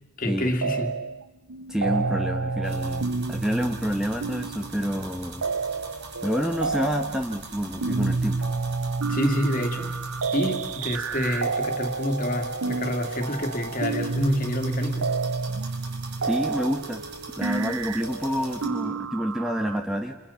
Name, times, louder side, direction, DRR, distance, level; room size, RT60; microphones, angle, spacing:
voice 1, 0.2-0.9 9.1-10.0 10.3-15.1, left 1 dB, 35° left, 2.5 m, -27 dB
sound 1, 0.6-1.2 1.5-19.8, right 4 dB, 65° right, 0.8 m, -30 dB
voice 2, 1.7-5.5 6.2-8.5 16.2-17.0 17.4-20.2, equal, 5° right, 1.2 m, -28 dB
sound 2, 2.6-18.7, right 3 dB, 50° right, 4.8 m, -42 dB
29.5 x 29.0 x 5.8 m
head